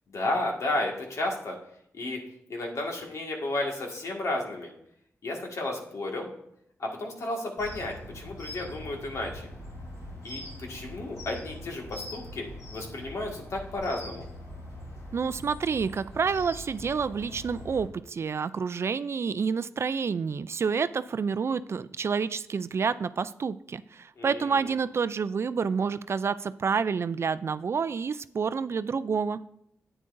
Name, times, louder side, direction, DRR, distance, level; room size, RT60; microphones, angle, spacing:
voice 1, 0.1-1.6 1.9-2.2 2.5-4.7 5.2-6.3 6.8-9.5 10.2-12.5 12.7-14.2 24.2-24.7, left 2 dB, 70° left, 0 dB, 1.8 m, -32 dB
sound 1, 7.6-17.9, left 1 dB, 85° left, 3.6 m, -42 dB
voice 2, 15.1-29.4, right 5 dB, 55° right, 15 dB, 0.3 m, -29 dB
10.0 x 8.9 x 2.6 m, 0.74 s
cardioid pair, 80°, 5 cm